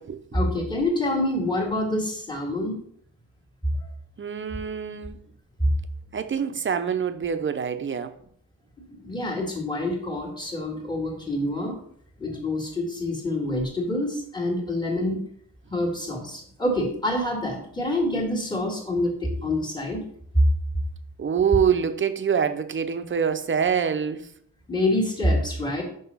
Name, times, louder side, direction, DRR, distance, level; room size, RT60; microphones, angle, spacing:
voice 1, 0.3-2.8 8.9-11.8 12.2-15.2 15.7-20.0 20.3-20.4 24.7-25.8, left 1 dB, 10° left, 1.8 m, -26 dB
voice 2, 4.2-5.2 6.1-8.1 21.2-24.3, right 7 dB, 35° right, 0.6 m, -25 dB
5.9 x 5.5 x 5.5 m
wide cardioid pair, 145°, 36 cm